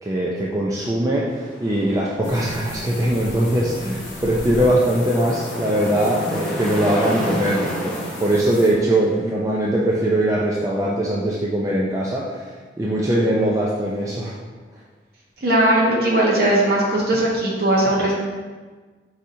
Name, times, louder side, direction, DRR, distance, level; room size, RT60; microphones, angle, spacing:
voice 1, 0.0-12.5 12.8-14.4, right 1 dB, 15° right, -5 dB, 0.4 m, -21 dB
sound 1, 1.3-9.3, equal, 5° left, 0.7 m, -34 dB
sound 2, 2.2-8.7, equal, 70° left, 1.1 m, -33 dB
voice 2, 15.4-18.1, right 1 dB, 55° right, -4 dB, 1.1 m, -18 dB
4.8 x 4.2 x 2.6 m, 1.4 s
head